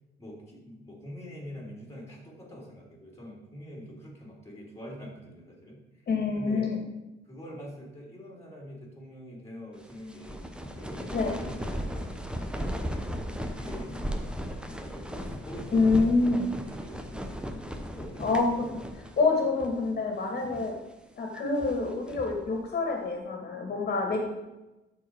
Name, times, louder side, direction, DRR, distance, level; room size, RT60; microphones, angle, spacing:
voice 1, 0.2-6.1 6.3-6.7 7.2-17.6 17.9-18.6, equal, 15° left, -2 dB, 3.1 m, -45 dB
voice 2, 6.1-6.8 11.1-11.4 13.9-14.0 15.7-16.5 18.2-18.7 19.0-20.7 21.2-24.2, left 3 dB, 50° left, 2 dB, 2.1 m, -26 dB
sound 1, 9.8-19.3 19.6-19.7 20.3-20.8 21.3-22.4, equal, 5° right, 1.0 m, -36 dB
13.0 x 4.7 x 4.7 m, 1.0 s
cardioid pair, 90°, 20 cm